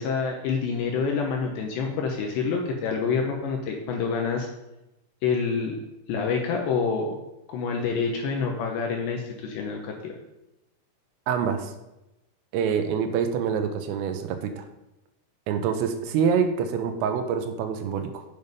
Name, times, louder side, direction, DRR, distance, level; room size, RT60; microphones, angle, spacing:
voice 1, 0.0-4.5 5.2-5.8 6.1-7.2 7.5-10.2, left 5 dB, 75° left, 1 dB, 2.7 m, -27 dB
voice 2, 11.3-11.7 12.5-14.6 15.5-18.2, right 7 dB, 85° right, 7 dB, 3.4 m, -26 dB
8.1 x 7.1 x 5.3 m, 0.94 s
omnidirectional pair, 5.9 m